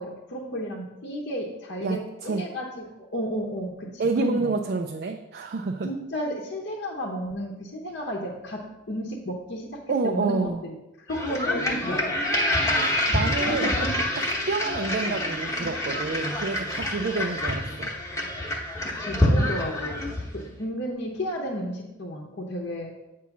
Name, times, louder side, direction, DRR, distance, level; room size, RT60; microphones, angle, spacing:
voice 1, 0.0-4.5 5.8-12.2 13.4-13.9 18.6-20.0 20.3-23.0, equal, 55° left, -2 dB, 0.8 m, -33 dB
voice 2, 1.8-2.5 4.0-5.9 9.9-10.6 12.7-13.7 14.2-17.9 19.3-19.5, right 3 dB, 50° right, 3 dB, 0.4 m, -28 dB
sound 1, 11.1-20.4, left 1 dB, 15° left, 1.0 m, -27 dB
8.1 x 3.0 x 5.9 m, 0.96 s
head